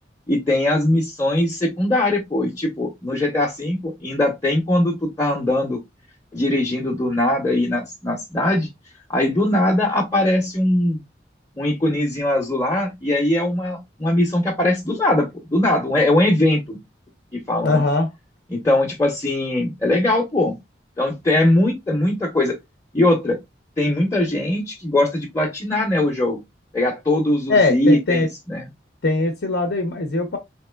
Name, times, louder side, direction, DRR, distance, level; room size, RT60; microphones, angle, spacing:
voice 1, 0.3-5.8 6.3-8.7 9.1-11.0 11.6-16.8 17.3-17.8 18.5-20.6 21.0-22.5 22.9-23.4 23.8-26.4 26.7-28.6, left 1 dB, 15° left, 0.6 m, -20 dB
voice 2, 17.6-18.1 27.5-28.3 29.0-30.4, left 3 dB, 70° left, 0.7 m, -20 dB
3.7 x 2.9 x 2.2 m
head